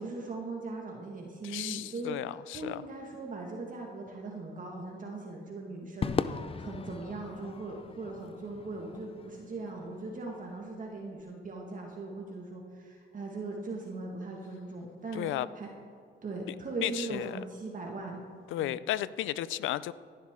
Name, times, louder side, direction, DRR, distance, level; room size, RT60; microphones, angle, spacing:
voice 1, 0.0-2.2 2.5-15.3 15.6-15.7 16.2-18.2 18.6-18.8, right 3 dB, 40° right, 0 dB, 1.9 m, -39 dB
voice 2, 1.4-2.8 15.1-15.5 16.8-17.4 18.5-19.9, left 13 dB, 80° left, 18 dB, 0.5 m, -34 dB
Crowd / Fireworks, 6.0-10.5, left 5 dB, 30° left, 0.5 m, -38 dB
17.0 x 11.0 x 3.7 m, 2.3 s
cardioid pair, 90°, 20 cm